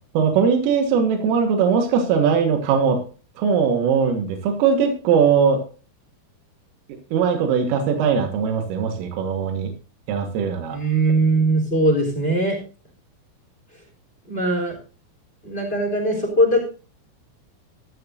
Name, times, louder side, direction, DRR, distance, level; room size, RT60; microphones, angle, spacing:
voice 1, 0.2-3.0 3.4-5.6 7.1-9.7 10.1-10.8, right 6 dB, 85° right, 4 dB, 4.1 m, -20 dB
voice 2, 10.7-12.6 14.3-14.7 15.4-16.6, right 1 dB, 15° left, 2 dB, 2.9 m, -20 dB
14.0 x 13.0 x 2.6 m, 0.36 s
omnidirectional pair, 5.8 m